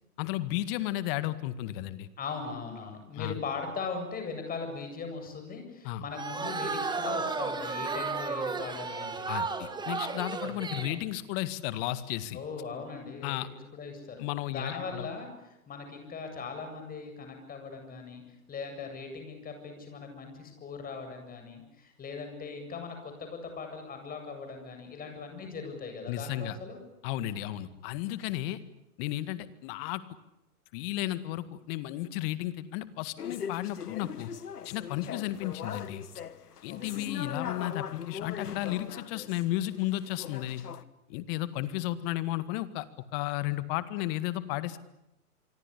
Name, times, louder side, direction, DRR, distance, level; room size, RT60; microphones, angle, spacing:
voice 1, 0.2-2.1 3.2-3.3 5.8-6.0 9.3-12.4 13.2-13.5 14.2-15.1 26.1-26.6 27.0-28.6 29.0-30.0 30.7-34.3 34.6-36.0 36.6-40.6 41.1-42.9 43.1-44.8, left 14 dB, 35° left, 14 dB, 2.0 m, -33 dB
voice 2, 2.2-9.4 10.4-10.7 12.3-15.3 15.7-26.8 36.7-37.1 40.5-40.8, left 4 dB, 20° left, 5 dB, 7.8 m, -40 dB
sound 1, 6.1-11.0, right 4 dB, 10° right, 2.4 m, -33 dB
sound 2, 33.2-40.8, left 8 dB, 80° left, 1.7 m, -40 dB
27.0 x 24.0 x 8.4 m, 0.88 s
hypercardioid pair, 120°, 46 cm